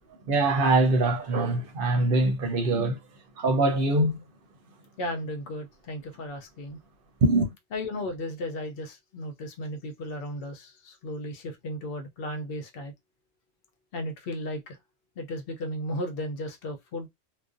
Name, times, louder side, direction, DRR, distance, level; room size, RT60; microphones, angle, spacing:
voice 1, 0.3-3.0 3.4-4.2 7.2-7.5, right 2 dB, 60° right, 0.7 m, -23 dB
voice 2, 5.0-6.8 7.7-12.9 13.9-14.8 15.2-17.1, left 1 dB, 65° left, 0.7 m, -35 dB
2.5 x 2.0 x 2.4 m
omnidirectional pair, 1.1 m